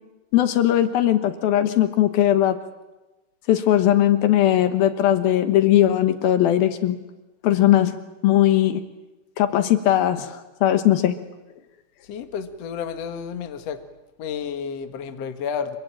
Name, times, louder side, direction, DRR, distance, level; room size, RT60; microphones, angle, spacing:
voice 1, 0.3-2.6 3.5-7.0 7.4-8.0 8.2-8.8 9.4-11.2, left 12 dB, 75° left, 9 dB, 3.1 m, -19 dB
voice 2, 12.0-13.8 14.2-15.8, left 7 dB, 50° left, 7 dB, 2.3 m, -31 dB
26.0 x 23.5 x 8.8 m, 1.0 s
omnidirectional pair, 4.4 m